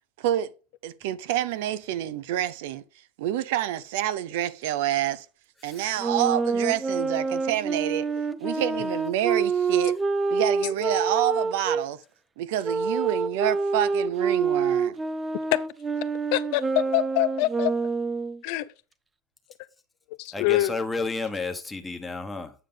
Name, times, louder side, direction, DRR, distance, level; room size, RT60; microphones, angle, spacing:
voice 1, 0.2-0.5 0.8-2.8 3.2-5.3 5.6-8.1 8.4-9.9 10.3-12.0 12.4-15.0, right 12 dB, 70° right, 0.6 m, -27 dB
Wind instrument woodwind instrument, 6.0-11.8 12.6-18.4, right 4 dB, 15° right, 0.5 m, -27 dB
voice 2, 16.3-17.7 18.4-18.6 20.1-20.7, left 16 dB, 60° left, 0.6 m, -25 dB
voice 3, 20.3-22.5, left 3 dB, 10° left, 1.2 m, -31 dB
8.8 x 5.0 x 3.9 m
supercardioid pair, 135°, 0 cm